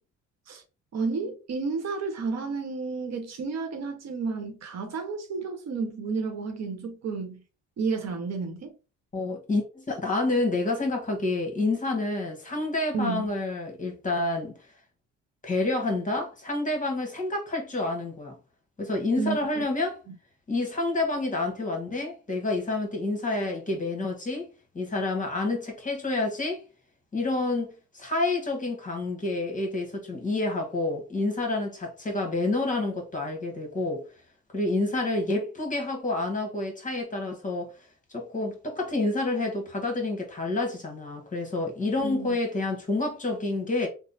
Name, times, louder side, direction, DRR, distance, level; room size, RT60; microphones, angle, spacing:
voice 1, 0.9-7.4 7.8-8.7 12.9-13.3 19.2-19.4 20.1-20.2 42.0-42.4, right 4 dB, 60° right, 0.9 m, -31 dB
voice 2, 9.1-14.5 15.4-18.4 18.8-20.0 20.5-24.5 24.7-26.6 27.1-34.0 34.5-37.7 38.1-43.9, left 2 dB, 25° left, 1.2 m, -28 dB
3.2 x 2.0 x 3.9 m
cardioid pair, 90°, 30 cm